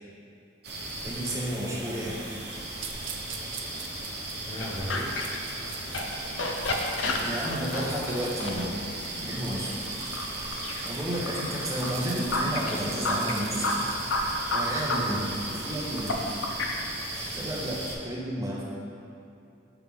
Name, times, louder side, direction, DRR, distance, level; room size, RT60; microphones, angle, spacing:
sound 1, 0.6-18.0, right 2 dB, 60° right, 0.8 m, -37 dB
voice 1, 1.0-2.2 7.0-8.7 9.2-9.9 10.8-13.9 14.5-15.3 15.5-16.2 17.3-18.6, equal, 15° right, -5 dB, 0.9 m, -32 dB
sound 2, 2.8-6.0 6.4-15.1, right 8 dB, 85° right, 0.5 m, -45 dB
voice 2, 4.5-5.2 11.2-11.3 15.0-15.4, equal, 20° left, -5 dB, 0.6 m, -37 dB
sound 3, 4.6-16.7, left 2 dB, 90° left, 0.6 m, -32 dB
6.0 x 3.2 x 5.4 m, 2.7 s
head